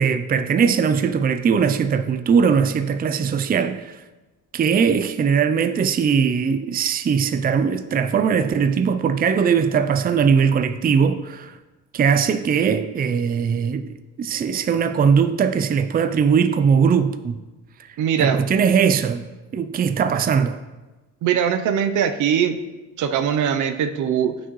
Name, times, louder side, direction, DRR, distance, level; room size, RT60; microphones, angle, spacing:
voice 1, 0.0-4.0 4.5-11.5 11.9-17.4 18.2-19.3 19.5-20.6, right 6 dB, 30° right, 0.4 m, -20 dB
voice 2, 18.0-18.4 21.2-22.6 23.0-24.4, right 8 dB, 75° right, 0.7 m, -21 dB
9.6 x 6.1 x 3.1 m
cardioid pair, 90°, 30 cm